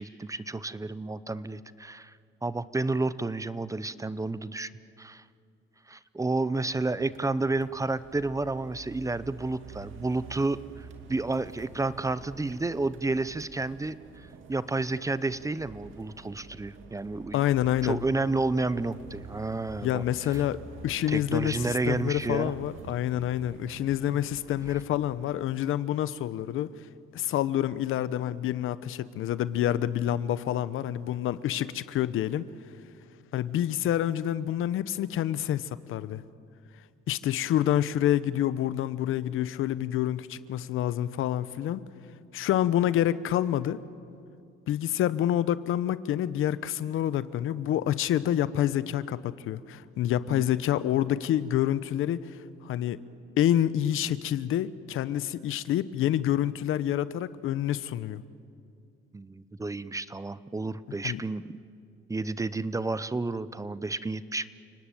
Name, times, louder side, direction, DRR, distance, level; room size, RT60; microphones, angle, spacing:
voice 1, 0.0-2.2 2.4-4.7 5.0-5.2 5.9-17.4 17.8-20.0 21.1-22.5 50.3-50.4 59.1-61.6 62.1-64.5, right 3 dB, 15° right, 16 dB, 0.7 m, -31 dB
sound 1, 6.5-24.9, right 4 dB, 70° right, 2.4 m, -48 dB
voice 2, 17.3-18.0 19.8-26.7 27.1-32.5 33.3-36.2 37.1-41.8 42.3-43.8 44.7-52.2 52.6-53.0 53.4-58.2 61.0-61.2, left 11 dB, 75° left, 16 dB, 0.9 m, -27 dB
30.0 x 19.0 x 9.1 m, 2.4 s
cardioid pair, 100°, 21 cm